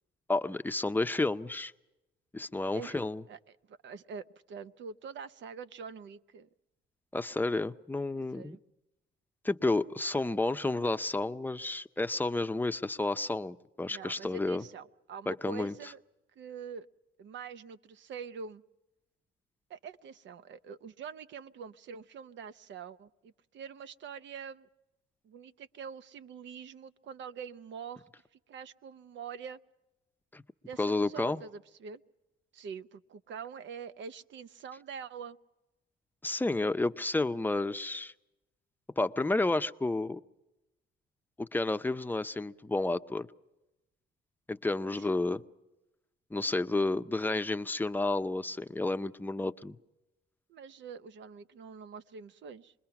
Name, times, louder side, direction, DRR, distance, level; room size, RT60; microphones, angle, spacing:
voice 1, 0.3-1.7 2.3-3.2 7.1-8.6 9.4-14.6 15.3-15.7 30.3-30.4 30.8-31.4 36.2-38.1 39.0-40.2 41.4-43.3 44.5-45.4 46.3-49.8, left 2 dB, 10° left, 10 dB, 0.7 m, -31 dB
voice 2, 3.7-6.5 8.3-8.6 13.9-16.0 16.4-16.9 17.2-18.6 19.7-24.7 25.2-28.1 28.5-29.6 30.7-32.0 32.5-35.4 45.0-45.1 50.5-52.7, right 6 dB, 65° right, 13 dB, 0.8 m, -45 dB
26.0 x 21.5 x 5.9 m, 0.99 s
cardioid pair, 90°, 20 cm